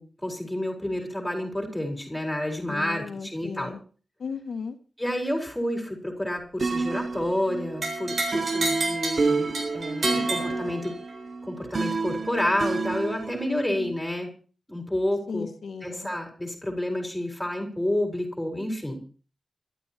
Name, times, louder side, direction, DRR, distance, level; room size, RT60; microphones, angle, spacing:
voice 1, 0.0-3.7 5.0-10.9 11.4-14.3 14.7-15.5 15.8-19.0, left 1 dB, 5° left, 1 dB, 4.4 m, -29 dB
voice 2, 2.7-3.8 4.2-4.8 9.9-10.8 13.5-14.0 15.3-16.1, left 5 dB, 85° left, 4 dB, 1.8 m, -36 dB
sound 1, 6.6-13.5, right 4 dB, 40° right, 0.8 m, -29 dB
sound 2, 7.8-11.2, right 2 dB, 65° right, 7.3 m, -30 dB
27.5 x 13.0 x 2.9 m, 0.39 s
wide cardioid pair, 175°, 0 cm